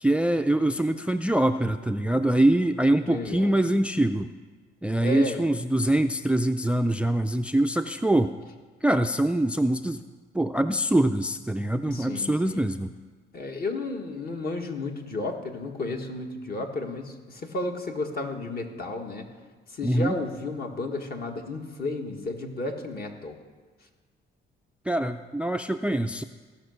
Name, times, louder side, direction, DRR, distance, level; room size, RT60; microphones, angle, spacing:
voice 1, 0.0-4.3 4.8-8.4 8.8-10.0 10.3-12.9 19.8-20.2 24.9-26.2, right 1 dB, 5° right, 9 dB, 0.3 m, -24 dB
voice 2, 3.1-3.6 5.0-5.5 11.8-12.6 13.3-19.2 19.7-23.3, left 2 dB, 50° left, 3 dB, 1.6 m, -33 dB
16.0 x 5.8 x 6.5 m, 1.4 s
cardioid pair, 90°, 20 cm